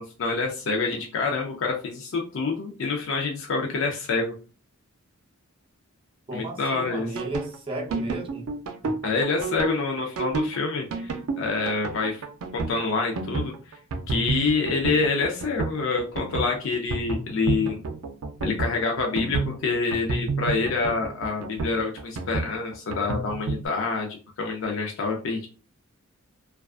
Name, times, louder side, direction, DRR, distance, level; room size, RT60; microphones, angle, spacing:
voice 1, 0.0-4.3 6.3-7.1 9.0-12.2 12.5-13.8 14.1-17.8 18.4-25.5, left 4 dB, 60° left, 0.4 m, -27 dB
voice 2, 6.3-8.5 8.8-9.0, right 1 dB, 25° right, 0.5 m, -34 dB
sound 1, 6.8-23.6, right 3 dB, 90° right, 0.4 m, -30 dB
2.3 x 2.3 x 2.3 m
head